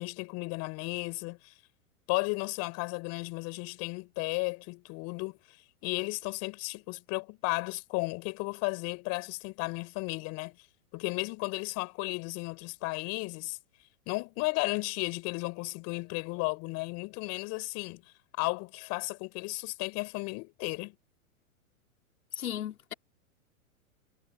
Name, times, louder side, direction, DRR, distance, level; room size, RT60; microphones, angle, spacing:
voice 1, 0.0-1.5 2.1-5.4 5.8-10.6 10.9-13.6 14.1-18.0 18.4-21.0, left 28 dB, 40° left, 7.0 m, -34 dB
voice 2, 22.4-22.9, left 11 dB, 80° left, 5.2 m, -36 dB
hypercardioid pair, 140°, 42 cm